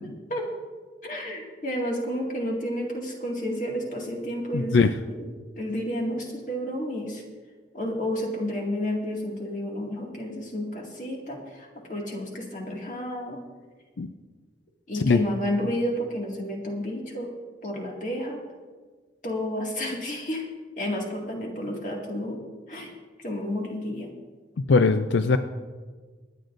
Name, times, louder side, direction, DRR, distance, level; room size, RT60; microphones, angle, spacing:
voice 1, 1.0-4.8 5.0-5.3 5.5-7.2 7.7-13.4 14.9-17.3 17.6-18.4 19.2-20.4 20.8-22.4 22.7-22.9 23.2-24.1, equal, 45° left, -1 dB, 2.1 m, -31 dB
voice 2, 4.5-4.9 14.0-14.1 14.9-15.2 24.7-25.4, left 4 dB, 85° left, 9 dB, 0.5 m, -20 dB
24.5 x 9.5 x 2.6 m, 1.4 s
head